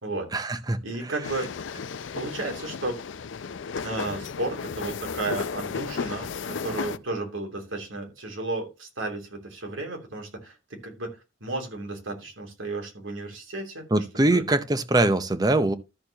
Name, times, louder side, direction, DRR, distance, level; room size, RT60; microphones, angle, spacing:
voice 1, 0.3-0.8 13.9-15.7, right 2 dB, 20° right, 0.6 m, -22 dB
voice 2, 0.8-1.5 2.1-3.0 3.8-14.0 14.3-14.5, right 2 dB, 90° right, 3.0 m, -33 dB
sound 1, 1.2-7.0, left 5 dB, 75° left, 0.5 m, -34 dB
13.0 x 6.7 x 2.9 m
head